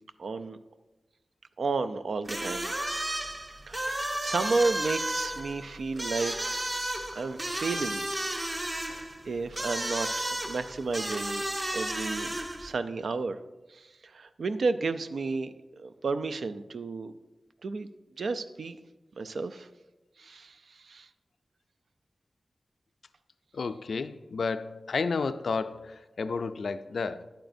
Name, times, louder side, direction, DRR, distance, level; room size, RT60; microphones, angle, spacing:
voice 1, 0.2-0.6 1.6-2.7 3.7-6.7 7.1-8.0 8.9-11.4 11.7-12.3 12.6-13.4 13.7-13.8 14.1-15.5 15.8-17.1 17.6-17.9 18.2-18.8 19.2-19.7 20.2-20.5 20.9-21.1, right 3 dB, 80° right, 0.4 m, -32 dB
sound 1, 2.2-12.7, right 1 dB, 25° right, 0.7 m, -33 dB
voice 2, 23.5-27.3, left 4 dB, 80° left, 0.3 m, -32 dB
10.5 x 8.9 x 2.6 m
wide cardioid pair, 125°, 0 cm